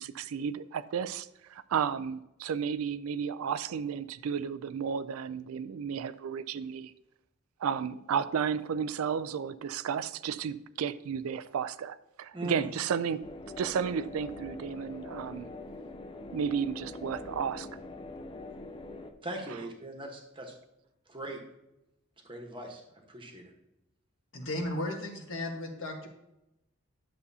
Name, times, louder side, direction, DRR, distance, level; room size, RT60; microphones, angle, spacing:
voice 1, 0.0-6.9 7.6-13.3 13.6-15.5 16.3-17.7, right 7 dB, 85° right, 0.4 m, -33 dB
voice 2, 12.3-12.6 19.2-20.5 21.1-21.4 22.2-22.8 23.1-23.5, right 2 dB, 25° right, 1.2 m, -40 dB
sound 1, 13.2-19.1, left 2 dB, 25° left, 0.5 m, -43 dB
voice 3, 24.3-26.1, left 1 dB, 65° left, 1.5 m, -35 dB
10.5 x 6.8 x 2.8 m
head